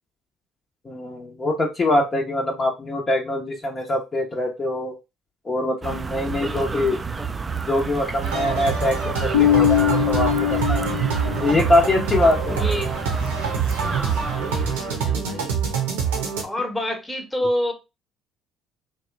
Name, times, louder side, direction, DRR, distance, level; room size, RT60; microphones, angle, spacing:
voice 1, 0.8-4.9 5.4-7.0 7.7-10.9 11.4-12.6, left 1 dB, 35° left, 0.8 m, -23 dB
sound 1, 5.8-15.1, right 4 dB, 30° right, 0.3 m, -30 dB
voice 2, 6.1-7.4 12.1-13.0 13.8-15.5 16.4-17.7, left 1 dB, 10° left, 1.0 m, -30 dB
sound 2, 8.2-16.4, right 6 dB, 85° right, 0.8 m, -26 dB
Bass guitar, 9.3-11.8, left 11 dB, 75° left, 0.6 m, -21 dB
2.9 x 2.3 x 3.1 m
hypercardioid pair, 60°, 0 cm